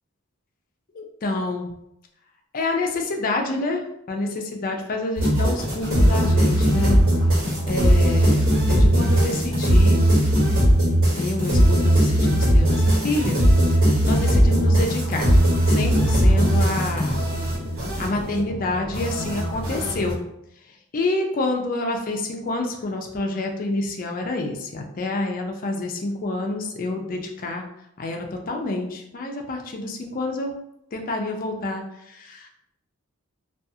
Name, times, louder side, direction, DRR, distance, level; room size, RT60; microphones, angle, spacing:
voice 1, 0.9-1.7 2.5-7.0 7.7-10.0 11.1-13.4 14.1-15.3 15.7-17.3 18.0-20.2 20.9-27.7 28.0-30.5 30.9-32.5, left 2 dB, 40° left, 2 dB, 0.4 m, -28 dB
sound 1, 5.2-20.1, equal, 75° right, 1.2 m, -19 dB
2.4 x 2.3 x 2.7 m, 0.80 s
head